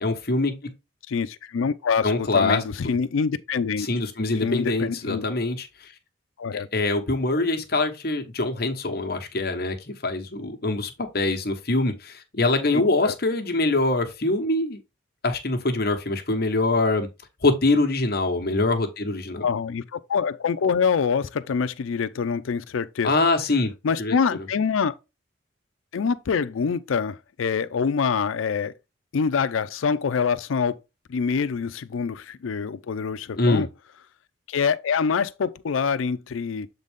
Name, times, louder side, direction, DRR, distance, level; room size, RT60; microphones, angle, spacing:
voice 1, 0.0-0.7 2.0-3.0 3.8-5.9 6.7-14.8 15.2-17.1 17.4-19.5 23.0-23.7 24.0-24.2 33.4-33.7, left 2 dB, 50° left, 1.2 m, -24 dB
voice 2, 1.1-3.9 4.4-5.3 6.4-6.7 12.7-13.1 19.4-23.1 23.8-24.9 25.9-28.7 29.1-30.8 31.1-33.7 34.5-36.7, left 6 dB, 85° left, 0.4 m, -25 dB
7.3 x 4.0 x 3.5 m
head